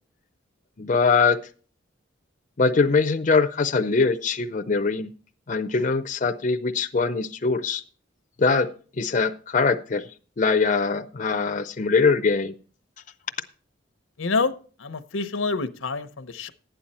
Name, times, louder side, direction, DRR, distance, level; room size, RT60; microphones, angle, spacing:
voice 1, 0.8-1.4 2.6-5.1 5.5-7.8 8.4-8.7 9.0-10.1 10.4-12.5, left 4 dB, 40° left, 7 dB, 0.5 m, -22 dB
voice 2, 14.2-14.5 14.8-16.5, left 4 dB, 90° left, 11 dB, 0.8 m, -27 dB
12.0 x 8.8 x 4.2 m, 0.40 s
head